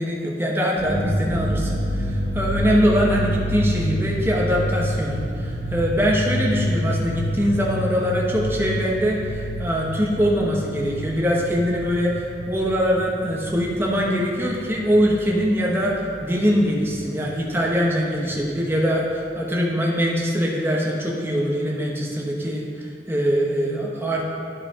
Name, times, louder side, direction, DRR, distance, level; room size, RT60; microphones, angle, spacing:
voice 1, 0.0-24.3, equal, 15° right, -3 dB, 1.0 m, -23 dB
sound 1, 0.8-17.3 17.6-17.7 18.0-18.7, equal, 65° right, 2.0 m, -28 dB
11.0 x 5.0 x 3.7 m, 2.5 s
head